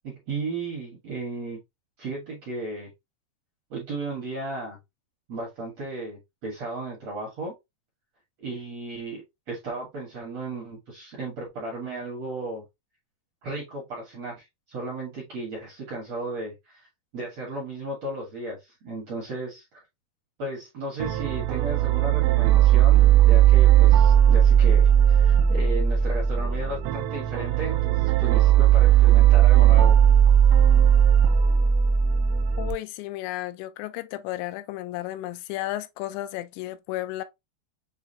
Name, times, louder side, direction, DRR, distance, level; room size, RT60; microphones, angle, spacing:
voice 1, 0.0-1.6 2.0-2.9 3.7-4.8 5.3-7.5 8.4-9.2 9.5-12.6 13.4-16.8 17.1-19.8 20.4-30.0, right 2 dB, 65° right, 1.6 m, -35 dB
sound 1, 21.0-32.7, right 10 dB, 80° right, 2.7 m, -18 dB
voice 2, 32.6-37.2, left 15 dB, 90° left, 2.8 m, -33 dB
7.1 x 2.4 x 2.6 m
omnidirectional pair, 5.0 m